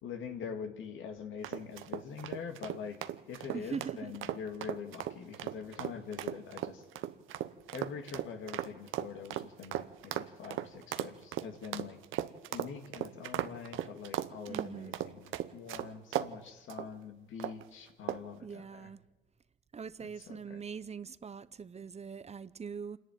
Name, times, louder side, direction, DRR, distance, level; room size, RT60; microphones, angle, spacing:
voice 1, 0.0-6.9 7.7-12.0 12.5-18.9 20.0-20.6, left 6 dB, 80° left, 2.2 m, -44 dB
sound 1, 1.4-16.3 16.7-16.9 17.4-17.7 18.1-18.4, right 13 dB, 90° right, 0.9 m, -37 dB
voice 2, 3.5-4.2 14.5-15.0 18.4-19.0 19.7-23.0, right 6 dB, 35° right, 0.7 m, -42 dB
26.5 x 11.0 x 9.3 m
cardioid pair, 90°, 20 cm